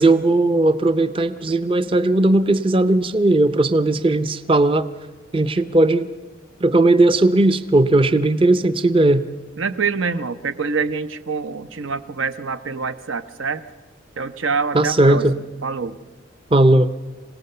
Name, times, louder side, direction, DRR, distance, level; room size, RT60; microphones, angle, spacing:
voice 1, 0.0-4.9 5.3-6.1 6.6-9.2 14.7-15.4 16.5-16.9, right 2 dB, 25° right, 11 dB, 0.6 m, -17 dB
voice 2, 9.6-13.6 14.2-15.3 15.6-16.0, right 5 dB, 85° right, 12 dB, 0.9 m, -25 dB
25.5 x 17.5 x 6.8 m, 1.2 s
head